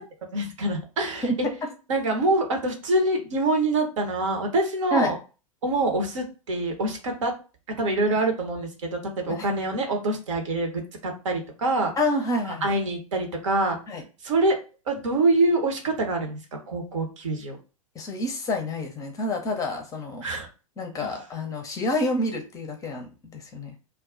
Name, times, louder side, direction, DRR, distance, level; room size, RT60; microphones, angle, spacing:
voice 1, 0.3-1.3 1.9-5.2 5.6-7.3 7.8-11.9 12.4-13.8 14.2-14.6 14.9-16.4 16.7-17.6 20.2-20.5 21.0-21.1, right 2 dB, 60° right, 3 dB, 0.9 m, -25 dB
voice 2, 12.0-12.7 13.9-14.0 17.9-20.2 20.8-23.8, left 1 dB, 20° left, 4 dB, 0.6 m, -28 dB
2.3 x 2.2 x 3.7 m, 0.33 s
figure-of-eight pair, 100°, 18 cm